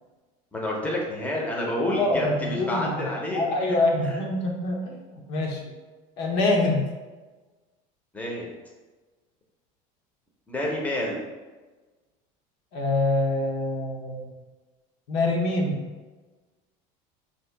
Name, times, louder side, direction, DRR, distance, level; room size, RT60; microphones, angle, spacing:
voice 1, 0.5-3.8 4.0-4.2 8.1-8.5 10.5-11.2, left 1 dB, 10° left, -2 dB, 0.7 m, -29 dB
voice 2, 2.0-3.1 3.3-5.6 6.2-6.9 12.7-14.3 15.1-15.9, left 2 dB, 70° left, 0 dB, 0.9 m, -25 dB
3.0 x 2.8 x 4.5 m, 1.3 s
cardioid pair, 140°, 18 cm